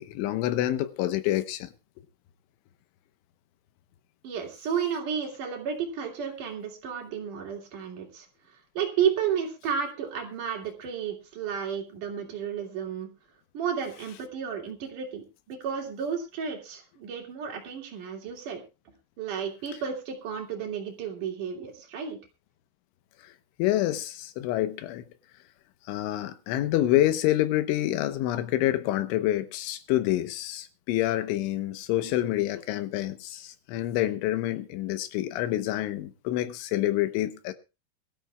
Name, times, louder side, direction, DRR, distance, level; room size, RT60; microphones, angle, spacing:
voice 1, 0.0-1.7 23.2-23.3 23.6-25.0 25.9-37.5, left 14 dB, 85° left, 3.5 m, -27 dB
voice 2, 4.2-13.1 13.5-18.6 19.2-22.2, right 7 dB, 50° right, 3.7 m, -32 dB
22.5 x 13.0 x 2.4 m
omnidirectional pair, 5.5 m